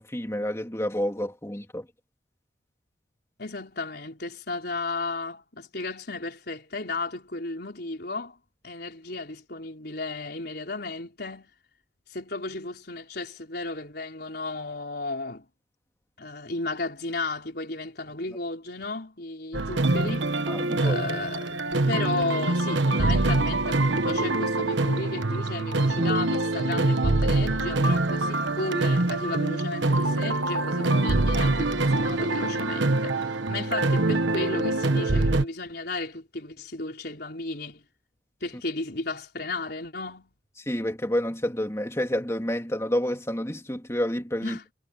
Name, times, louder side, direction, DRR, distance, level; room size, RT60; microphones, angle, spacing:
voice 1, 0.0-1.9 20.5-21.0 40.7-44.6, equal, 15° left, 2.9 m, -29 dB
voice 2, 3.4-8.4 8.6-11.5 12.1-15.5 16.2-20.3 20.8-21.6 21.9-37.8 38.4-40.3 44.4-44.6, left 3 dB, 55° left, 4.7 m, -34 dB
sound 1, 19.5-35.5, right 2 dB, 70° right, 1.2 m, -24 dB
head